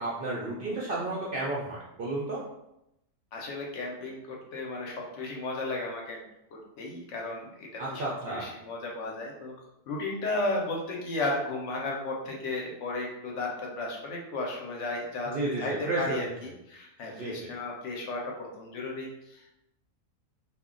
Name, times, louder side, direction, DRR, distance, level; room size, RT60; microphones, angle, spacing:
voice 1, 0.0-2.4 7.8-8.5 15.3-16.5 17.2-17.5, right 2 dB, 60° right, -5 dB, 0.5 m, -32 dB
voice 2, 3.3-6.2 6.5-8.0 8.3-9.5 9.9-19.6, left 2 dB, 65° left, -1 dB, 0.9 m, -34 dB
2.3 x 2.1 x 3.6 m, 0.84 s
omnidirectional pair, 1.4 m